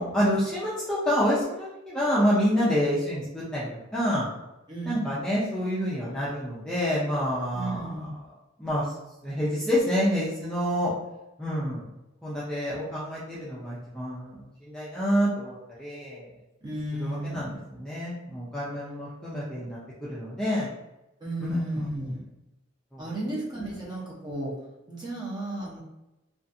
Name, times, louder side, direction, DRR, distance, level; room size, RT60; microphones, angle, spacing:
voice 1, 0.0-4.3 4.8-7.9 8.6-8.9 9.2-10.9 11.4-11.8 12.2-16.3 17.0-17.5 17.8-20.7 21.5-21.9 22.9-23.0, equal, 5° left, -9 dB, 0.4 m, -28 dB
voice 2, 4.7-5.1 7.5-8.1 16.6-17.6 21.2-22.2 23.0-24.5 24.9-25.8, right 1 dB, 20° right, -5 dB, 0.7 m, -34 dB
2.4 x 2.4 x 2.6 m, 0.95 s
head